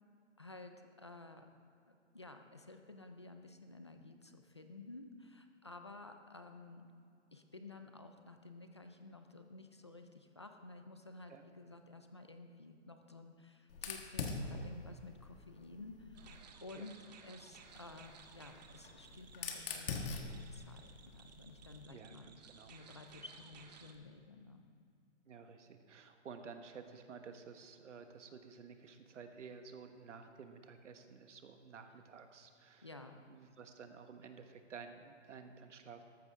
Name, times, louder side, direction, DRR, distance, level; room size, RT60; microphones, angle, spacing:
voice 1, 0.4-1.5 1.9-6.9 7.3-22.4 22.7-24.6 32.8-33.2, left 2 dB, 25° left, 6 dB, 0.3 m, -53 dB
Fire, 13.7-16.5 17.6-21.8, left 4 dB, 50° left, 1.5 m, -45 dB
sound 1, 16.1-23.9, right 6 dB, 35° right, 0.8 m, -58 dB
voice 2, 21.9-22.7 25.3-32.9 33.3-36.0, right 5 dB, 80° right, 7 dB, 1.4 m, -53 dB
13.5 x 12.5 x 3.5 m, 2.4 s
hypercardioid pair, 165°, 36 cm